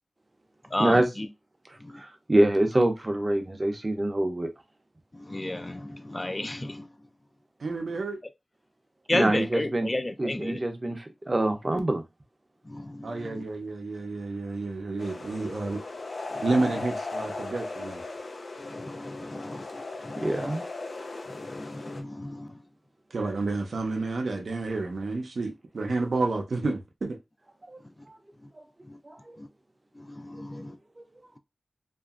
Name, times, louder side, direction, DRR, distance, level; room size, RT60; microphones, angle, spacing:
voice 1, 0.7-1.3 1.8-2.0 5.1-6.9 9.1-10.6 12.7-13.4 16.3-16.4 18.6-20.5 21.3-22.5 28.9-29.0 29.4-29.5 30.0-30.8, left 1 dB, 25° left, 0.3 m, -33 dB
voice 2, 1.7-4.5 9.1-9.9 10.2-12.0 20.2-20.6 27.6-27.8 28.1-28.2 28.5-28.6 29.0-29.4 30.5-30.6 31.0-31.1, right 1 dB, 30° right, 0.5 m, -26 dB
voice 3, 7.6-8.2 13.0-15.8 16.4-18.0 23.1-27.2, right 3 dB, 85° right, 0.5 m, -30 dB
sound 1, 15.0-22.0, left 3 dB, 90° left, 0.5 m, -37 dB
2.8 x 2.5 x 2.4 m
wide cardioid pair, 85°, 0 cm